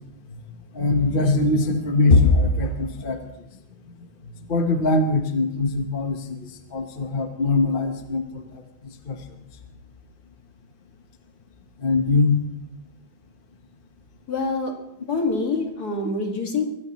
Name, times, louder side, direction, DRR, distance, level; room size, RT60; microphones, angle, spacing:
voice 1, 0.7-3.2 4.5-9.2 11.8-12.4, left 3 dB, 35° left, 6 dB, 1.0 m, -22 dB
voice 2, 14.3-14.7 15.1-16.6, left 3 dB, 55° left, 2 dB, 2.5 m, -25 dB
22.5 x 16.0 x 3.0 m, 0.85 s
omnidirectional pair, 2.1 m